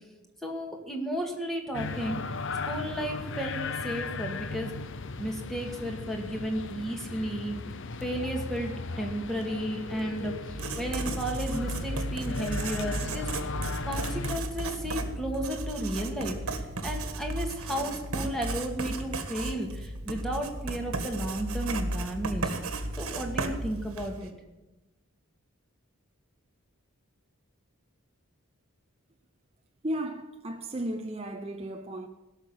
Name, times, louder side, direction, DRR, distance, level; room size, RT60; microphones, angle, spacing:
voice 1, 0.4-2.2 2.6-4.7 5.2-7.6 8.0-13.5 13.8-22.5 23.0-24.3, right 1 dB, ahead, 2.1 m, -33 dB
sound 1, 1.7-14.4, left 3 dB, 60° left, 0.8 m, -37 dB
Writing, 10.5-24.3, right 2 dB, 80° right, 1.7 m, -34 dB
voice 2, 29.8-32.1, right 1 dB, 25° right, 0.7 m, -34 dB
17.0 x 6.6 x 9.5 m
head